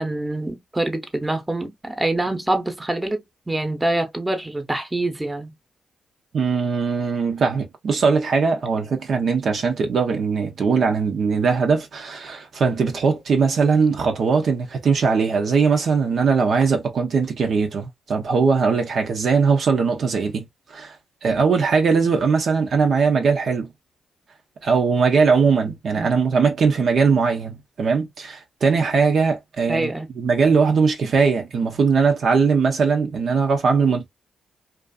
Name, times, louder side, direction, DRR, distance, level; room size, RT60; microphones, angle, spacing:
voice 1, 0.0-5.5 25.6-26.1 29.7-30.1, right 2 dB, 15° right, 0.8 m, -25 dB
voice 2, 6.3-20.5 20.7-20.9 21.2-23.7 24.6-29.9 30.2-34.1, right 5 dB, 65° right, 0.6 m, -20 dB
2.5 x 2.4 x 2.3 m
cardioid pair, 65°, 0 cm